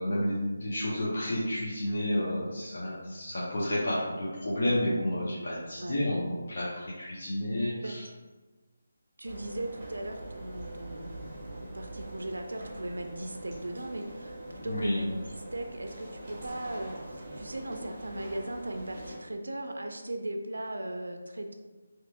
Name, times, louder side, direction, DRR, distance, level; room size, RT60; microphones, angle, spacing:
voice 1, 0.0-8.1 14.6-15.0, left 1 dB, 55° left, -7 dB, 0.7 m, -31 dB
sound 1, 9.2-19.2, right 1 dB, 25° right, 1.3 m, -43 dB
voice 2, 9.2-21.5, right 1 dB, 85° right, 5 dB, 0.3 m, -38 dB
2.9 x 2.4 x 3.4 m, 1.3 s
figure-of-eight pair, 165°, 0 cm